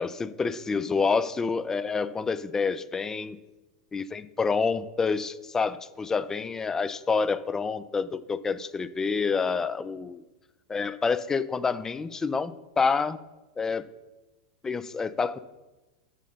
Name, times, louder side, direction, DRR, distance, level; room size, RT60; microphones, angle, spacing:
voice 1, 0.0-3.4 3.9-10.2 10.7-13.2 13.6-13.9 14.6-15.4, left 5 dB, 15° left, 0.3 m, -28 dB
7.3 x 3.8 x 5.4 m
hypercardioid pair, 95°, 3 cm